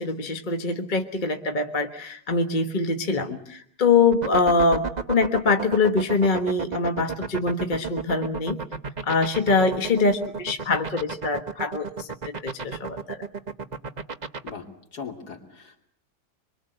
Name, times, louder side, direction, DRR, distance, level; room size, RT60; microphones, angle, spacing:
voice 1, 0.0-8.6 9.0-13.3, left 3 dB, 25° left, 6 dB, 1.3 m, -24 dB
voice 2, 3.1-3.4 14.4-15.8, left 6 dB, 50° left, 4 dB, 3.3 m, -39 dB
sound 1, 4.1-14.5, right 5 dB, 30° right, 0.8 m, -31 dB
25.0 x 24.0 x 8.0 m, 0.64 s
omnidirectional pair, 2.2 m